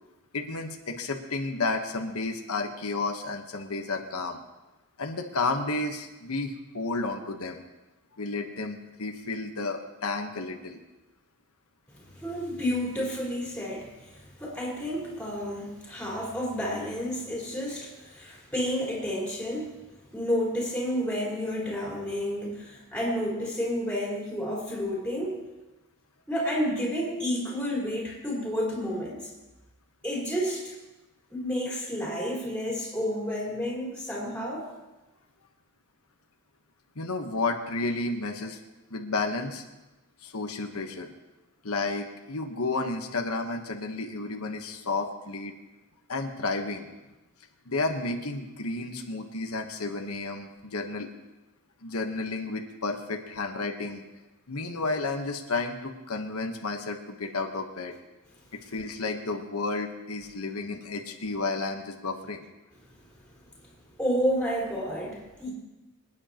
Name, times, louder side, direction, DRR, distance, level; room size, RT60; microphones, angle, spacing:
voice 1, 0.3-4.4 5.0-7.6 8.2-10.8 37.0-38.6 38.9-39.6 40.2-41.1 41.6-45.5 46.1-46.9 47.7-51.1 51.8-54.0 54.5-57.9 58.5-62.4, left 3 dB, 90° left, 3 dB, 1.2 m, -32 dB
voice 2, 11.9-19.8 20.1-25.4 26.3-29.3 30.0-30.7 31.3-34.7 64.0-65.5, equal, 5° left, -5 dB, 4.5 m, -30 dB
25.5 x 9.9 x 3.0 m, 1.1 s
head